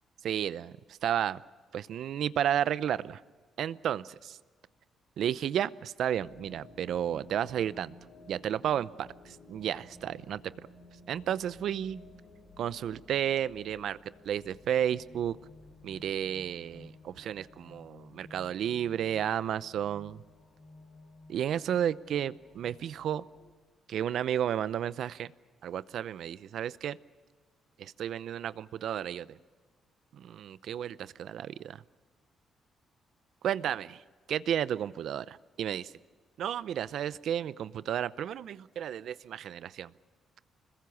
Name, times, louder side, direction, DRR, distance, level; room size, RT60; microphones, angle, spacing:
voice 1, 0.2-1.4 1.7-3.2 3.6-4.4 5.2-7.9 8.3-10.4 11.1-12.0 12.6-14.0 14.2-15.4 15.8-20.2 21.3-23.2 23.9-25.3 25.6-27.0 27.8-29.4 30.1-31.8 33.4-34.0 34.3-35.9 36.4-39.9, right 10 dB, 70° right, 17 dB, 0.7 m, -32 dB
sound 1, 6.2-23.5, left 2 dB, 40° left, 3.2 m, -54 dB
26.0 x 21.0 x 7.1 m, 1.4 s
cardioid pair, 90°, 0 cm